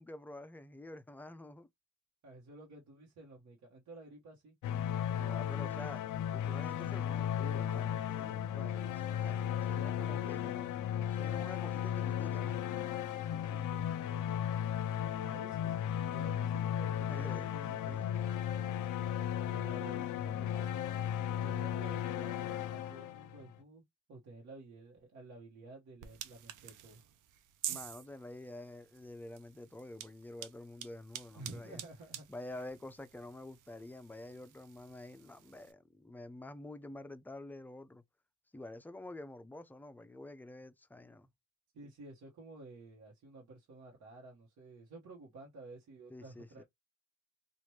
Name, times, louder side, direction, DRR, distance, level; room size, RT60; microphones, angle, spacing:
voice 1, 0.0-1.7 5.1-6.0 6.3-10.7 11.1-12.6 17.1-17.5 17.9-18.0 27.7-31.8 32.3-38.0 38.5-41.3 46.1-46.6, left 1 dB, 5° left, 0.4 m, -48 dB
voice 2, 2.2-4.5 10.1-10.8 13.3-14.5 15.2-18.2 19.5-20.8 21.4-27.0 31.3-32.2 41.7-46.6, right 2 dB, 65° right, 1.1 m, -52 dB
sound 1, 4.6-23.5, left 10 dB, 80° left, 0.5 m, -35 dB
sound 2, 26.0-35.7, right 11 dB, 90° right, 0.6 m, -48 dB
2.9 x 2.5 x 3.1 m
cardioid pair, 90°, 30 cm